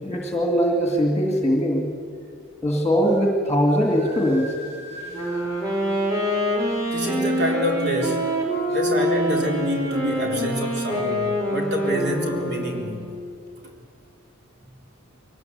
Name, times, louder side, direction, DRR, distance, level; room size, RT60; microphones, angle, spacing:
voice 1, 0.0-1.9 2.6-4.5, equal, 15° left, 1 dB, 2.2 m, -21 dB
sound 1, 3.0-3.2 3.7-5.5, equal, 35° right, 6.6 m, -40 dB
Wind instrument woodwind instrument, 5.0-13.1, equal, 15° right, 4.9 m, -25 dB
voice 2, 6.9-8.3 8.7-13.0, equal, 55° right, 1 dB, 3.8 m, -27 dB
22.5 x 18.5 x 8.2 m, 2.3 s
head